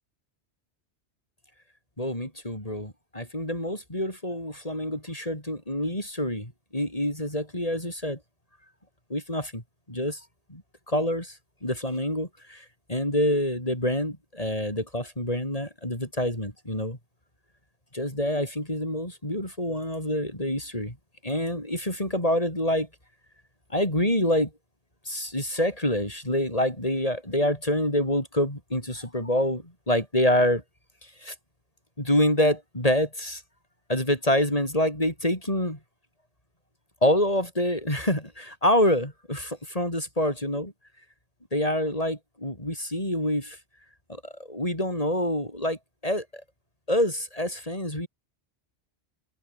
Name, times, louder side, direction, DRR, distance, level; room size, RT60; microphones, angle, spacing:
voice 1, 2.0-8.2 9.1-9.6 9.9-10.2 10.5-10.6 10.9-11.4 11.6-17.0 17.9-21.0 21.2-22.9 23.7-24.5 25.1-30.6 31.2-31.3 32.0-33.4 33.9-35.8 37.0-40.7 41.5-43.6 44.1-46.4 46.9-48.1, left 1 dB, 35° left, 7.0 m, -26 dB
omnidirectional pair, 1.1 m